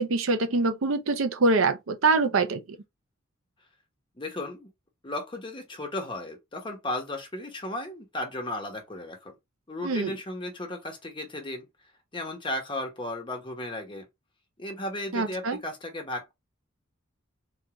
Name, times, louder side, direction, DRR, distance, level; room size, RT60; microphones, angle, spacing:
voice 1, 0.0-2.6 9.8-10.1 15.1-15.6, right 3 dB, 75° right, 0.6 m, -24 dB
voice 2, 4.2-4.7 5.0-9.3 9.7-11.7 12.1-14.1 14.6-16.3, left 1 dB, 25° left, 1.0 m, -35 dB
3.9 x 2.4 x 2.9 m
head